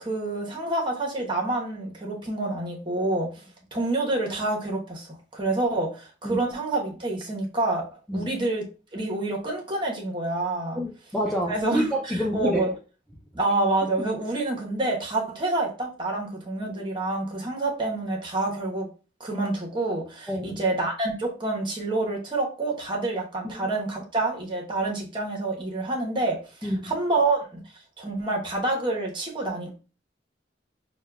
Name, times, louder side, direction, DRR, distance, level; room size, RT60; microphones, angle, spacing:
voice 1, 0.0-3.3 3.7-7.9 8.1-8.7 8.9-10.8 11.5-12.7 13.3-18.9 19.2-27.6 28.0-29.7, right 2 dB, 25° right, 0 dB, 1.0 m, -27 dB
voice 2, 10.8-12.6 20.3-20.6 23.4-23.7 26.6-26.9, equal, ahead, -2 dB, 0.4 m, -28 dB
6.2 x 2.3 x 2.2 m, 0.34 s
head